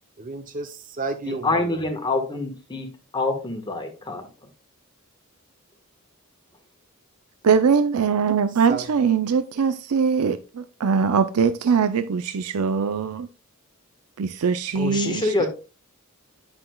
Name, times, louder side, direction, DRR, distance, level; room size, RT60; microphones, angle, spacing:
voice 1, 0.2-1.8 8.7-8.8 15.0-15.5, right 3 dB, 40° right, 0.6 m, -32 dB
voice 2, 1.3-2.9 3.1-4.2 14.7-15.5, left 2 dB, 20° left, 1.3 m, -26 dB
voice 3, 7.4-13.3 14.2-15.3, right 6 dB, 85° right, 0.5 m, -22 dB
9.7 x 5.9 x 2.3 m
head